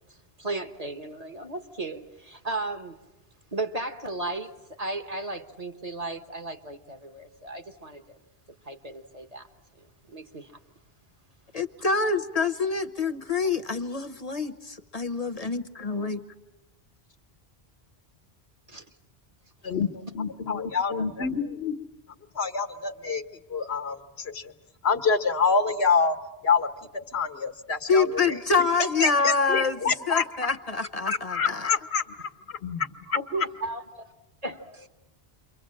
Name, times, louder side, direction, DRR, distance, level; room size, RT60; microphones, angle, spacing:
voice 1, 0.4-3.0 3.5-4.5 4.8-8.2 8.6-9.5 10.1-10.5 18.7-18.8 33.1-34.0 34.4-34.9, right 2 dB, 40° right, 1.4 m, -35 dB
voice 2, 11.5-16.2 27.9-29.8 30.1-31.7, left 4 dB, 40° left, 1.0 m, -26 dB
voice 3, 19.6-21.8 22.3-23.2 23.5-24.5 24.8-26.2 26.4-26.7 26.9-28.1 29.0-30.2 31.1-33.2, left 5 dB, 80° left, 1.5 m, -26 dB
29.0 x 24.0 x 7.6 m
omnidirectional pair, 1.1 m